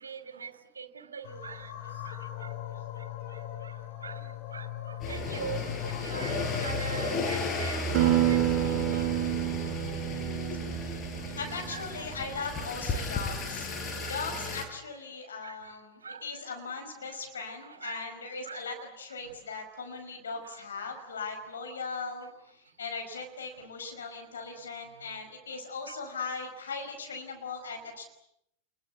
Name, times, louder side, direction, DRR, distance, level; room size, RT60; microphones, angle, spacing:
voice 1, 0.0-1.7 2.0-2.2 4.0-4.2 4.5-8.4 8.6-9.1 11.7-12.0 15.4-15.6 16.0-16.2 17.8-18.0 18.5-18.6 25.9-26.0, right 6 dB, 70° right, 9 dB, 3.0 m, -42 dB
sound 1, 1.2-7.4, left 12 dB, 50° left, 5.9 m, -39 dB
sound 2, 5.0-14.7, left 3 dB, 30° left, 6.8 m, -34 dB
Acoustic guitar, 7.9-12.8, right 13 dB, 40° right, 4.5 m, -29 dB
voice 2, 11.4-13.7 14.1-28.0, left 4 dB, 70° left, 5 dB, 5.2 m, -39 dB
28.5 x 22.0 x 8.2 m, 0.78 s
figure-of-eight pair, 90°, 0 cm